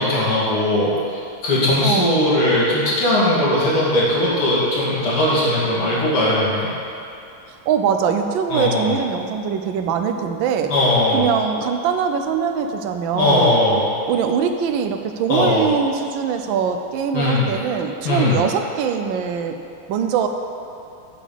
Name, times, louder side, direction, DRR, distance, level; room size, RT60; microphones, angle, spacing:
voice 1, 0.0-6.7 8.5-8.9 10.7-11.3 13.1-13.9 15.3-15.7 17.1-17.5 18.0-18.4, left 1 dB, 90° left, -8 dB, 3.2 m, -19 dB
voice 2, 1.8-2.2 7.7-10.7 11.1-13.5 14.1-19.6 19.9-20.3, right 7 dB, 70° right, 6 dB, 1.3 m, -22 dB
8.5 x 5.5 x 6.8 m, 2.6 s
omnidirectional pair, 2.4 m